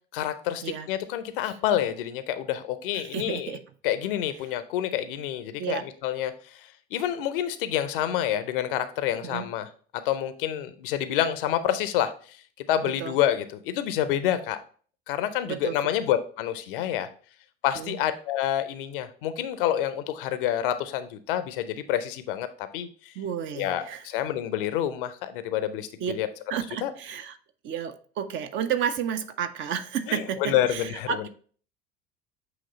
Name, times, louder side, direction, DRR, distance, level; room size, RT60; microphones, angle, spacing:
voice 1, 0.1-3.6 3.8-12.4 12.7-14.6 15.1-17.1 17.6-23.2 23.5-26.3 26.8-26.9 30.1-31.3, left 11 dB, 60° left, 0.6 m, -28 dB
voice 2, 2.9-3.6 5.6-5.8 9.2-9.5 12.8-13.2 15.5-15.8 17.8-18.0 23.2-24.0 26.0-26.1 26.5-27.4 27.6-31.3, right 8 dB, 40° right, 0.6 m, -31 dB
7.9 x 3.0 x 4.0 m
figure-of-eight pair, 65°, 30 cm